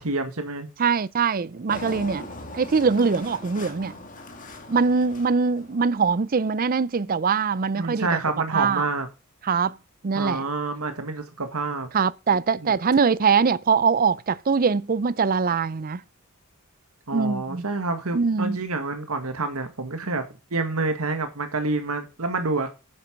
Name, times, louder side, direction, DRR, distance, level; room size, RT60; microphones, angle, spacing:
voice 1, 0.0-0.7 7.8-9.1 10.1-11.9 12.6-12.7 17.1-20.2 20.5-22.7, right 3 dB, 80° right, 1.7 m, -28 dB
voice 2, 0.8-2.3 2.5-3.9 4.7-8.2 8.5-8.9 9.4-9.8 10.0-10.5 11.9-16.0 17.1-17.6 18.1-18.6, right 5 dB, 40° right, 0.5 m, -22 dB
Engine, 1.7-6.2, left 2 dB, 35° left, 2.2 m, -40 dB
9.7 x 7.7 x 5.2 m
head